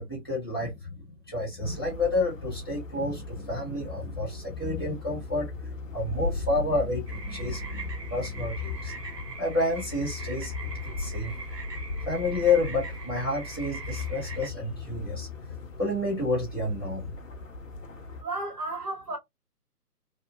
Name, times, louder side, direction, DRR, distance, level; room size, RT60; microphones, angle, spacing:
voice 1, 0.0-8.9 9.4-10.5 11.0-11.3 12.1-15.3 15.8-17.1, left 2 dB, 15° left, 0.7 m, -30 dB
sound 1, 1.6-18.2, left 3 dB, 55° left, 0.5 m, -38 dB
sound 2, 7.1-14.5, right 4 dB, 85° right, 1.1 m, -42 dB
voice 2, 18.2-19.2, right 2 dB, 70° right, 1.5 m, -33 dB
2.9 x 2.0 x 2.3 m
figure-of-eight pair, 150°, 48 cm